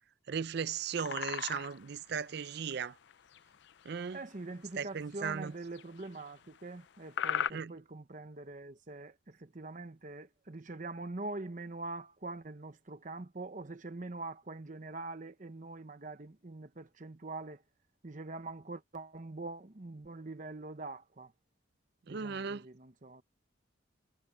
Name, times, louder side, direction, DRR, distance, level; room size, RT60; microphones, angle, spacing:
voice 1, 0.3-3.0 3.8-4.3 4.8-5.5 7.5-7.8 22.1-22.6, right 6 dB, 55° right, 0.4 m, -37 dB
sound 1, 0.7-1.9 2.5-2.7 3.1-3.9 4.7-4.9 5.5-6.6 7.1-7.5, left 8 dB, 60° left, 0.4 m, -37 dB
voice 2, 4.1-17.6 18.0-21.3 22.1-23.2, right 2 dB, 40° right, 0.9 m, -44 dB
head